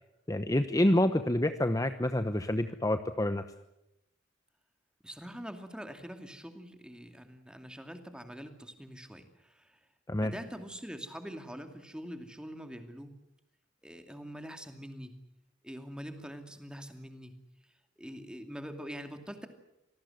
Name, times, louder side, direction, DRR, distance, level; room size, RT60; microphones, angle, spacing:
voice 1, 0.3-3.4 10.1-10.3, left 1 dB, 20° left, 9 dB, 0.9 m, -27 dB
voice 2, 5.0-9.8 10.2-13.2 13.8-15.1 15.6-17.3 18.0-19.5, equal, 5° right, 6 dB, 2.5 m, -44 dB
26.5 x 18.5 x 7.8 m, 0.89 s
head